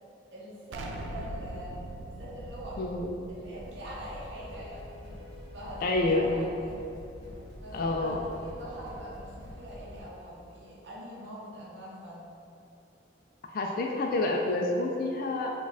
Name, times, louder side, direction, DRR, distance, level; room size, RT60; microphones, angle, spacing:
voice 1, 0.3-1.8 2.0-2.8 3.3-4.9 5.5-6.8 7.5-12.3, equal, 60° right, -7 dB, 0.8 m, -43 dB
Explosion, 0.7-5.5, right 1 dB, 80° right, 0.3 m, -42 dB
voice 2, 2.8-3.2 5.8-6.5 7.7-8.2 13.5-15.5, left 2 dB, 50° left, 1 dB, 0.3 m, -28 dB
sound 1, 3.5-10.0, left 1 dB, 20° right, 1.3 m, -46 dB
4.7 x 2.3 x 4.0 m, 2.7 s
head